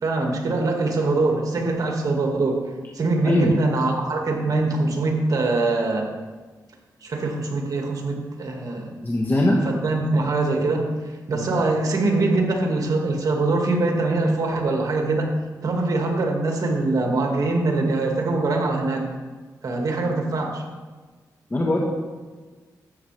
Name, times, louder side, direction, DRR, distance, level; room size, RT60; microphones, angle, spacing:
voice 1, 0.0-2.6 2.9-6.1 7.0-8.9 9.6-10.9 11.3-15.3 15.6-19.1 19.6-20.6, right 2 dB, 55° right, 2 dB, 1.9 m, -23 dB
voice 2, 9.0-9.6 11.3-11.5 21.5-21.8, left 1 dB, 25° left, -2 dB, 1.4 m, -21 dB
13.0 x 8.3 x 3.4 m, 1.4 s
cardioid pair, 75°, 7 cm